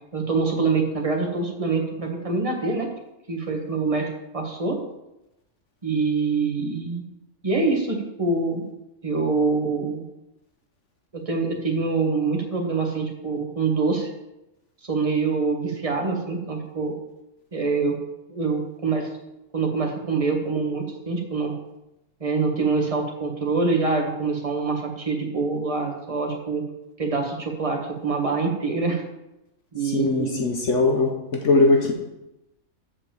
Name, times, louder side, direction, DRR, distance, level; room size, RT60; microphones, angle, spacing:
voice 1, 0.1-2.9 3.3-4.1 4.3-4.8 5.8-7.0 7.4-8.7 9.0-10.0 11.1-14.1 14.8-16.9 17.5-18.0 18.3-19.1 19.5-21.5 22.2-26.6 27.0-29.0 29.7-30.4, right 4 dB, 25° right, 1 dB, 1.5 m, -25 dB
voice 2, 29.9-31.9, left 3 dB, 65° left, 2 dB, 1.2 m, -20 dB
7.1 x 5.0 x 7.0 m, 0.92 s
omnidirectional pair, 1.4 m